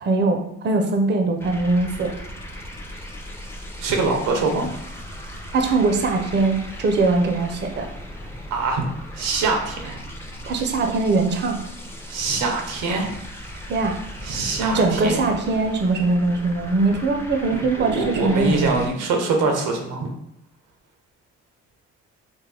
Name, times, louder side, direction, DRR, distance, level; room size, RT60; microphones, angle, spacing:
voice 1, 0.0-2.1 5.5-7.9 10.5-11.6 13.7-14.0 14.7-18.8, right 3 dB, 35° right, 4 dB, 0.5 m, -21 dB
sound 1, 1.4-18.9, equal, 10° left, 0.5 m, -37 dB
voice 2, 3.8-4.7 8.5-8.9 9.1-10.0 12.1-13.1 14.2-15.2 17.5-20.1, right 3 dB, 90° right, 2 dB, 0.7 m, -24 dB
3.7 x 2.1 x 3.3 m, 0.78 s
cardioid pair, 90°, 30 cm